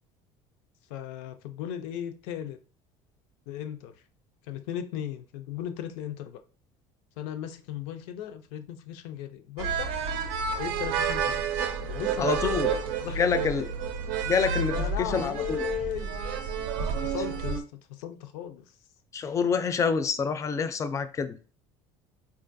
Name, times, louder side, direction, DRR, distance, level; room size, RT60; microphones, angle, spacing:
voice 1, 0.9-2.6 3.5-3.9 4.4-6.4 7.2-10.0 10.6-11.4 11.9-13.7 14.7-16.2 16.8-18.7, left 10 dB, 85° left, 0.4 m, -36 dB
sound 1, 9.6-17.6, right 6 dB, 80° right, 0.5 m, -30 dB
voice 2, 12.2-12.7 13.1-13.7 14.3-15.6 19.1-21.4, left 6 dB, 25° left, 0.4 m, -27 dB
4.3 x 2.4 x 2.6 m
cardioid pair, 120°, 13 cm